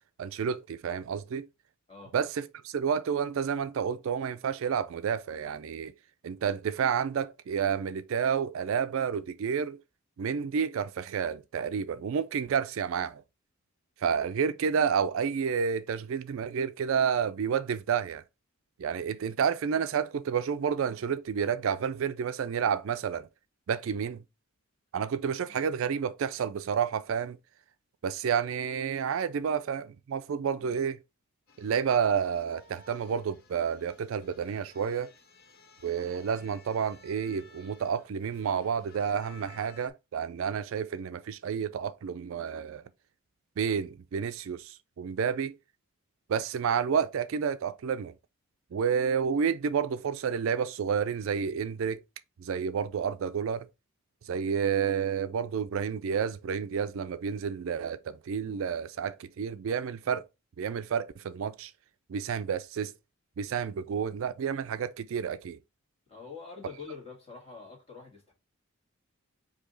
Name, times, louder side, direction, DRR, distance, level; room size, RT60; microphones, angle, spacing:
voice 1, 0.2-1.5 2.1-5.9 6.2-9.8 10.2-13.2 14.0-18.2 18.8-23.3 23.7-24.2 24.9-27.4 28.0-31.0 31.6-35.1 35.8-42.8 43.6-45.6 46.3-48.1 48.7-52.0 52.4-53.7 54.3-60.3 60.6-61.7 62.1-62.9 63.4-65.6, right 7 dB, 60° right, 0.3 m, -30 dB
sound 1, 31.5-39.9, left 5 dB, 45° left, 0.7 m, -56 dB
voice 2, 66.1-68.3, left 5 dB, 25° left, 1.8 m, -46 dB
4.8 x 2.7 x 3.8 m
head